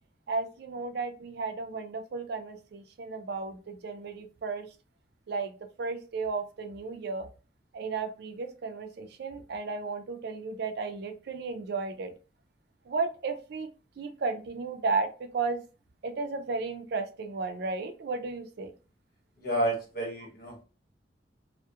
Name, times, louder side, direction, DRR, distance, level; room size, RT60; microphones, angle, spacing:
voice 1, 0.3-4.7 5.3-7.3 7.7-12.1 12.9-13.7 14.0-15.6 16.0-18.7, right 4 dB, 60° right, 6 dB, 0.4 m, -34 dB
voice 2, 19.4-20.6, right 1 dB, 55° left, -1 dB, 1.0 m, -30 dB
2.3 x 2.1 x 2.7 m, 0.34 s
head